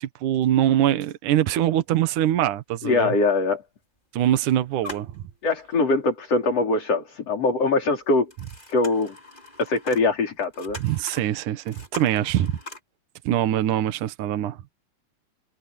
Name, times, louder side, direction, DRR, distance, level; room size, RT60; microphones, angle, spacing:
voice 1, 0.0-3.1 4.1-5.2 10.8-12.5 13.3-14.6, right 12 dB, 70° right, 2.6 m, -23 dB
sound 1, 1.6-1.7 2.0-2.2 3.1-3.2 3.7-4.4 4.6-5.8 6.3-6.4 8.0-12.8, left 2 dB, 15° left, 5.7 m, -42 dB
voice 2, 2.8-3.6 5.4-8.3 8.7-9.2 9.6-10.8, left 3 dB, 45° left, 5.8 m, -22 dB
omnidirectional pair, 4.0 m